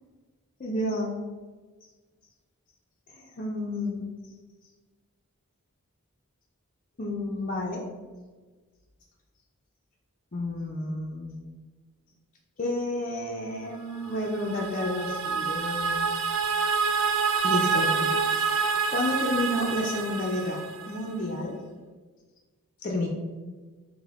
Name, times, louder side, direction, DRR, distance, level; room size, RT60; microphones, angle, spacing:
voice 1, 0.6-1.1 3.1-4.1 7.0-7.8 10.3-11.4 12.6-16.1 17.4-20.6 20.8-21.6 22.8-23.1, left 1 dB, 35° left, -3 dB, 0.4 m, -31 dB
sound 1, 14.0-21.2, right 5 dB, 65° right, 0.4 m, -27 dB
5.5 x 2.1 x 3.4 m, 1.4 s
head